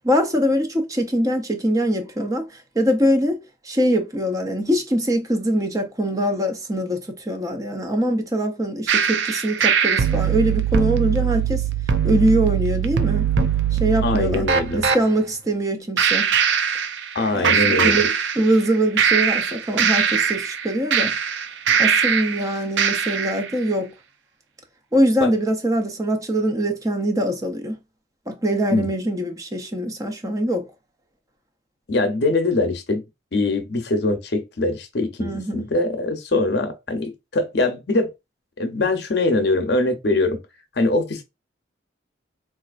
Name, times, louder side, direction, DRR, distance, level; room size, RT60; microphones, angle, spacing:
voice 1, 0.0-2.5 2.8-11.6 12.0-13.3 13.8-16.3 17.3-21.1 21.8-23.9 24.9-27.7 28.3-30.7 35.2-35.7, right 1 dB, 20° right, 0.5 m, -23 dB
sound 1, 8.9-15.0 16.0-17.2 17.4-18.7 19.0-22.4 22.8-23.4, right 7 dB, 75° right, 0.5 m, -21 dB
voice 2, 14.0-14.9 17.1-18.0 21.7-21.8 25.2-25.3 28.7-28.9 31.9-33.0 33.3-38.1 38.6-40.4 40.8-41.2, left 2 dB, 60° left, 0.7 m, -22 dB
4.1 x 2.4 x 2.4 m
head